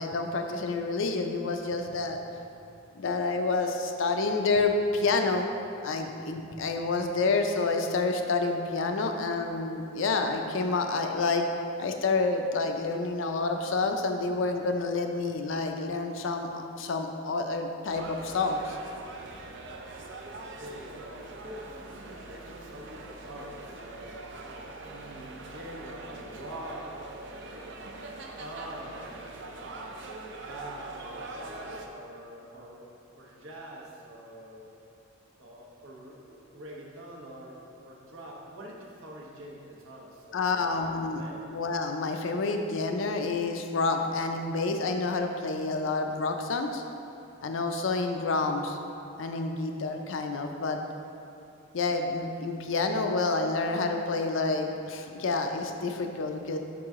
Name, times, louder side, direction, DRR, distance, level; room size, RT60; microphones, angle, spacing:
voice 1, 0.0-2.2 3.0-5.5 5.8-11.4 11.8-18.8 40.3-46.8 47.4-48.8 49.2-50.8 51.7-56.6, left 3 dB, 70° left, 5 dB, 0.5 m, -29 dB
sound 1, 17.9-31.9, right 2 dB, 65° right, 0.5 m, -43 dB
voice 2, 20.2-24.3 24.8-27.9 28.4-29.8 30.4-34.7 35.4-37.6 37.8-41.5, right 1 dB, 80° right, -2 dB, 1.0 m, -45 dB
5.4 x 4.8 x 3.6 m, 2.6 s
head